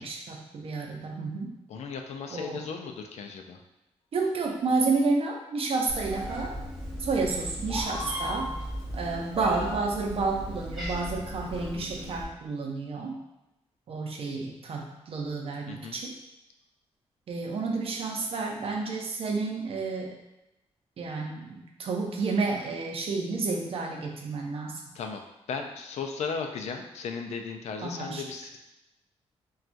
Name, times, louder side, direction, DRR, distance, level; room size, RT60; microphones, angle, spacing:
voice 1, 0.0-1.5 2.3-2.6 4.1-6.5 7.0-8.5 8.9-13.2 13.9-16.1 17.3-20.2 21.0-24.8 27.8-28.2, right 3 dB, 60° right, 0 dB, 0.6 m, -30 dB
voice 2, 1.7-3.6 15.7-16.0 24.9-25.2 25.5-28.6, left 5 dB, 80° left, 4 dB, 0.4 m, -36 dB
Meow, 5.9-12.2, equal, ahead, 1.0 m, -36 dB
4.3 x 2.3 x 2.5 m, 0.94 s
wide cardioid pair, 125°, 11 cm